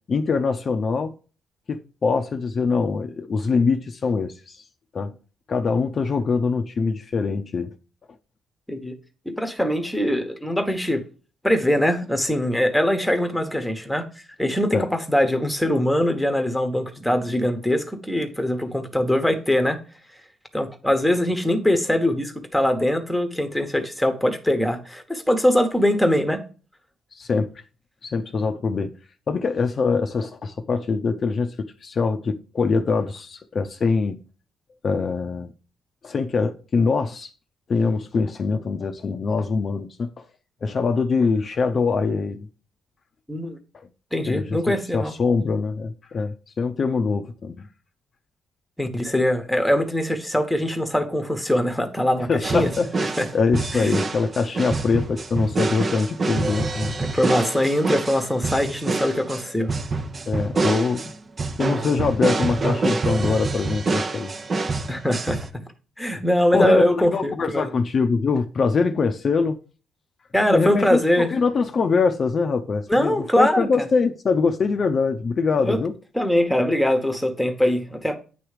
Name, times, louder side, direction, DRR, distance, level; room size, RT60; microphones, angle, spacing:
voice 1, 0.1-1.1 1.7-4.6 4.9-5.1 5.5-7.7 14.7-14.9 27.1-27.5 28.0-28.9 29.3-34.2 34.8-35.5 36.0-37.3 37.7-40.1 40.6-42.5 44.3-47.7 52.3-52.9 53.3-56.9 60.3-61.1 61.6-64.3 66.5-69.6 70.4-75.9, left 4 dB, 45° left, 0.6 m, -23 dB
voice 2, 9.2-11.1 11.4-14.0 14.4-19.8 20.5-26.4 43.3-43.6 44.1-45.1 48.8-52.7 53.2-53.3 53.7-54.0 57.0-59.7 64.9-65.4 66.0-67.7 70.3-71.3 72.9-73.7 75.6-75.8 76.1-78.2, left 1 dB, 5° left, 1.2 m, -22 dB
sound 1, 52.4-65.5, right 3 dB, 40° right, 0.8 m, -26 dB
9.1 x 3.1 x 5.0 m
cardioid pair, 90°, 0 cm